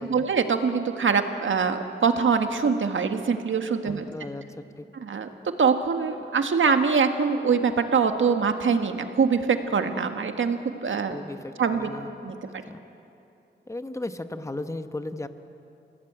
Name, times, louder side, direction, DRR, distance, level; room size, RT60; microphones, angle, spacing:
voice 1, 0.1-4.1 4.9-11.2 11.6-11.9 12.2-12.6, right 5 dB, 85° right, 7 dB, 1.6 m, -24 dB
voice 2, 3.8-4.4 4.8-4.9 11.1-12.1 12.7-12.8 13.7-15.3, left 2 dB, 15° left, 9 dB, 1.0 m, -35 dB
29.5 x 17.5 x 8.9 m, 2.8 s
wide cardioid pair, 160°, 20 cm